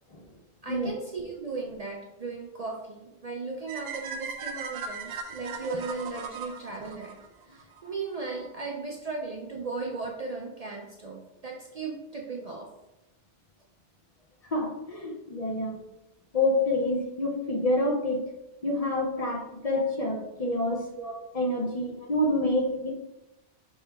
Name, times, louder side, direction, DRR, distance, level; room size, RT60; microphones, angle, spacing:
voice 1, 0.6-7.2 7.4-12.7 19.7-19.9 20.9-21.1 21.9-22.4, right 3 dB, 55° right, 0 dB, 0.4 m, -36 dB
sound 1, 3.7-7.8, right 5 dB, 90° right, 0.9 m, -38 dB
voice 2, 14.5-15.8 16.3-18.3 18.6-20.9 21.3-22.9, left 1 dB, 40° left, 0 dB, 0.6 m, -27 dB
5.4 x 2.8 x 3.3 m, 0.93 s
omnidirectional pair, 1.2 m